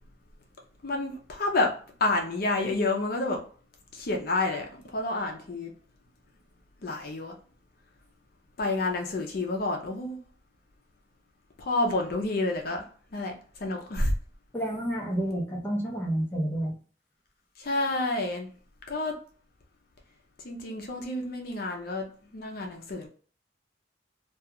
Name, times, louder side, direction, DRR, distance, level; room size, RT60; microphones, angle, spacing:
voice 1, 0.8-1.7 2.0-3.4 3.9-4.7 4.9-5.7 6.8-7.3 8.6-10.2 11.6-12.8 13.1-14.1 17.6-18.5 18.9-19.1 20.4-22.1 22.3-23.1, left 2 dB, 60° left, 0.5 m, -29 dB
voice 2, 14.5-16.7, right 1 dB, 15° left, 0.6 m, -29 dB
2.3 x 2.3 x 2.8 m
head